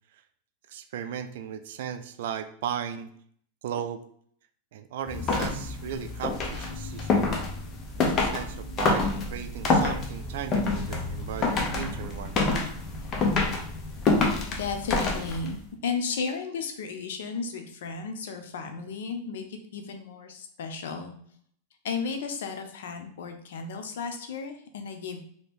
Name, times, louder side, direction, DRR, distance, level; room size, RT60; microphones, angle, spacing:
voice 1, 0.7-3.1 3.6-4.0 4.7-7.3 8.0-12.4, right 9 dB, 70° right, 9 dB, 0.3 m, -36 dB
sound 1, 5.1-15.6, left 3 dB, 25° left, 0.6 m, -27 dB
voice 2, 14.5-21.1 21.8-25.2, left 5 dB, 80° left, 6 dB, 0.5 m, -34 dB
2.8 x 2.6 x 3.3 m, 0.63 s
supercardioid pair, 155°, 0 cm